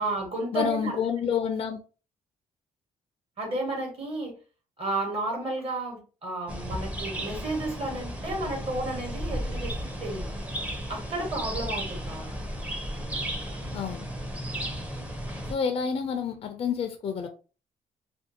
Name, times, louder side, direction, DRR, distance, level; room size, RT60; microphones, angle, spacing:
voice 1, 0.0-1.0 3.4-4.4 4.8-9.7 10.0-10.3 10.9-12.3, right 2 dB, 40° right, 1.2 m, -32 dB
voice 2, 0.5-1.8 13.7-14.1 15.5-17.3, left 7 dB, 45° left, 0.4 m, -28 dB
sound 1, 6.5-15.6, equal, 10° right, 0.6 m, -34 dB
2.5 x 2.3 x 2.7 m
cardioid pair, 110°, 15 cm